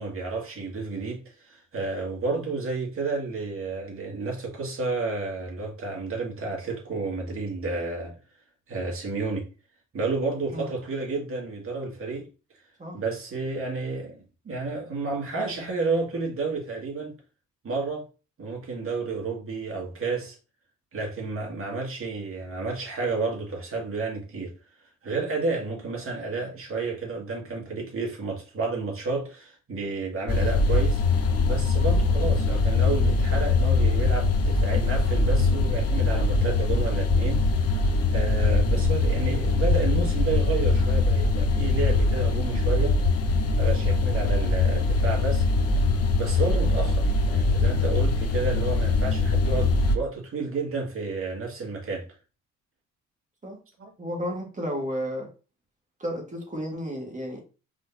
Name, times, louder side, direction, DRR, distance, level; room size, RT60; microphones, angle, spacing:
voice 1, 0.0-8.2 8.7-9.5 9.9-12.3 12.9-17.1 17.6-18.0 18.4-20.4 20.9-24.5 25.0-43.0 43.6-45.4 46.2-52.1 53.8-53.9, right 3 dB, 45° right, 2.2 m, -31 dB
sound 1, 30.3-49.9, left 3 dB, 55° left, 0.8 m, -22 dB
voice 2, 54.0-55.3 56.0-57.4, equal, 25° right, 1.8 m, -32 dB
5.0 x 3.7 x 2.8 m
cardioid pair, 90°, 30 cm